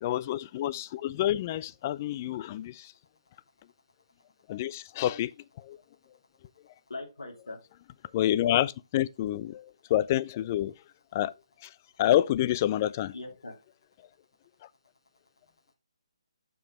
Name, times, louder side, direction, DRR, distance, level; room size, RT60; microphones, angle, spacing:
voice 1, 0.0-2.9 4.5-5.3 5.7-5.8 8.1-9.6 9.9-10.7 11.1-11.3 12.0-13.1, left 13 dB, 30° left, 0.4 m, -28 dB
voice 2, 4.5-4.8 6.9-7.6 8.1-8.2 13.1-13.6, left 2 dB, 75° left, 3.0 m, -42 dB
7.0 x 6.1 x 4.4 m
figure-of-eight pair, 145°, 3 cm